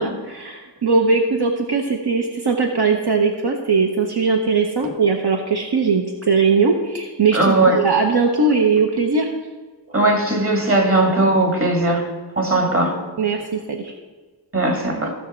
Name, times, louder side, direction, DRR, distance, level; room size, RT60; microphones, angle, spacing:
voice 1, 0.0-9.3 13.2-13.9, right 4 dB, 60° right, 2 dB, 1.0 m, -19 dB
voice 2, 7.3-7.9 9.9-12.0 12.4-12.9 14.5-15.1, right 2 dB, 30° right, 1 dB, 2.0 m, -18 dB
15.5 x 6.3 x 4.4 m, 1.4 s
wide cardioid pair, 105°, 45 cm